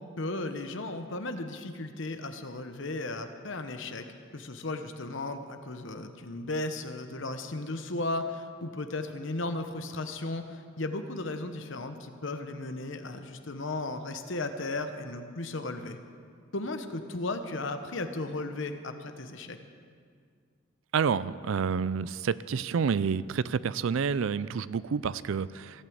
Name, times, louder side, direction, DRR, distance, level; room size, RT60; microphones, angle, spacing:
voice 1, 0.2-4.1 4.3-16.0 16.5-19.6, left 2 dB, 60° left, 8 dB, 1.0 m, -35 dB
voice 2, 20.9-25.5, right 6 dB, 70° right, 17 dB, 0.4 m, -28 dB
16.0 x 9.1 x 7.9 m, 2.1 s
head